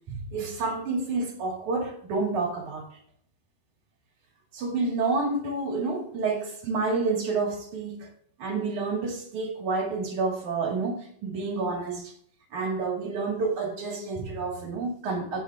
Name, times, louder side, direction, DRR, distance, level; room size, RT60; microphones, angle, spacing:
voice 1, 0.1-3.0 4.5-8.1 8.4-12.1 12.5-15.4, right 3 dB, 65° right, 3.6 m, -29 dB
19.0 x 10.0 x 2.4 m
omnidirectional pair, 3.7 m